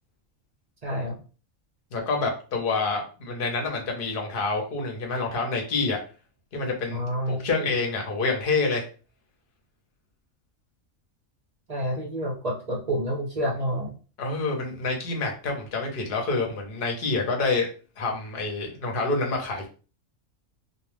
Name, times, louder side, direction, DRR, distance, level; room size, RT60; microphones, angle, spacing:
voice 1, 0.8-1.2 6.9-7.7 11.7-13.9, equal, 40° right, -2 dB, 0.6 m, -29 dB
voice 2, 1.9-6.0 6.5-8.9 14.2-17.7 18.0-19.7, left 3 dB, 50° left, 2 dB, 0.9 m, -27 dB
2.3 x 2.3 x 3.2 m, 0.36 s
omnidirectional pair, 1.4 m